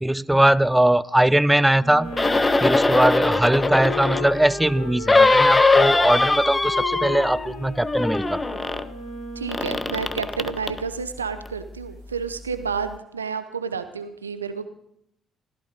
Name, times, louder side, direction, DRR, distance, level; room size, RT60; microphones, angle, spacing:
voice 1, 0.0-2.1 2.6-8.4, right 1 dB, 5° right, 20 dB, 0.5 m, -20 dB
Wind instrument woodwind instrument, 1.7-10.1, left 1 dB, 80° left, 3.1 m, -35 dB
sound 1, 2.1-4.4 5.1-7.6 7.8-8.9 9.5-10.8 11.5-11.6, left 3 dB, 25° left, 0.8 m, -21 dB
voice 2, 9.4-14.7, right 5 dB, 85° right, 11 dB, 0.8 m, -30 dB
16.5 x 14.0 x 5.2 m, 0.76 s
figure-of-eight pair, 45°, 0 cm